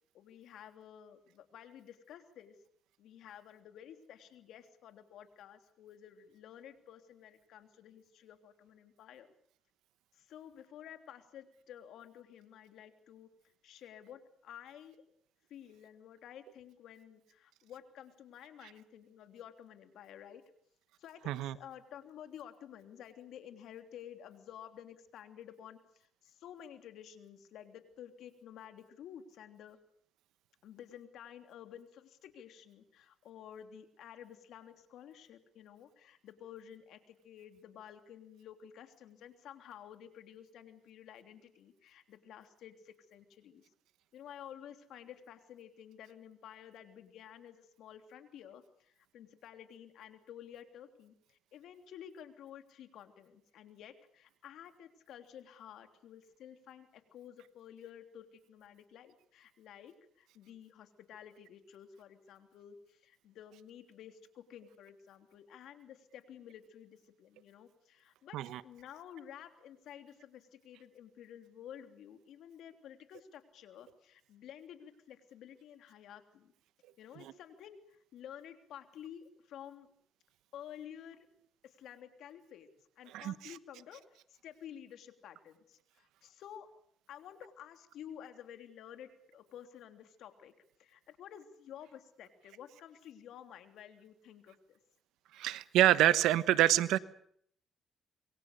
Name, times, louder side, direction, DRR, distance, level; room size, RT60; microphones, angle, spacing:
voice 1, 0.1-2.6 3.0-9.3 10.1-13.3 13.6-15.0 15.5-20.4 21.0-29.8 30.6-43.6 44.1-68.4 68.6-76.5 77.0-79.9 80.5-81.3 81.6-82.7 83.0-84.0 84.3-86.7 87.1-90.5 90.8-94.8, left 9 dB, 80° left, 7 dB, 3.2 m, -52 dB
voice 2, 21.3-21.6 68.3-68.6 77.2-77.3 83.1-83.5 95.3-97.0, right 13 dB, 90° right, 14 dB, 1.2 m, -27 dB
27.0 x 23.0 x 6.9 m, 0.66 s
cardioid pair, 90°, 0 cm